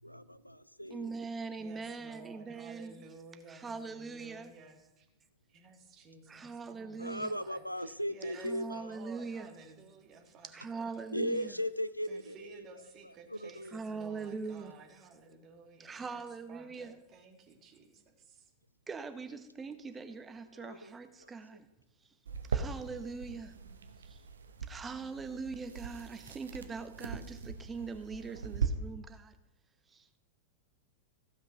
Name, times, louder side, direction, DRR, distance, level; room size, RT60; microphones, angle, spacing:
voice 1, 0.0-1.1 7.0-8.9 11.1-12.6 13.0-13.8 20.5-20.9 21.2-21.3, equal, 90° left, 16 dB, 0.4 m, -37 dB
voice 2, 0.9-3.0 3.5-4.5 6.3-7.3 8.4-9.5 10.5-11.6 13.7-14.7 15.8-17.0 18.9-21.7 22.5-23.5 24.0-24.2 24.6-29.4 29.9-30.2, right 4 dB, 15° right, 9 dB, 0.9 m, -42 dB
voice 3, 1.6-5.1 5.5-11.0 12.1-18.5, right 4 dB, 35° right, 3 dB, 1.9 m, -54 dB
sound 1, 22.3-28.7, right 6 dB, 70° right, 0.9 m, -39 dB
15.0 x 5.9 x 5.7 m, 0.94 s
figure-of-eight pair, 90°, 0 cm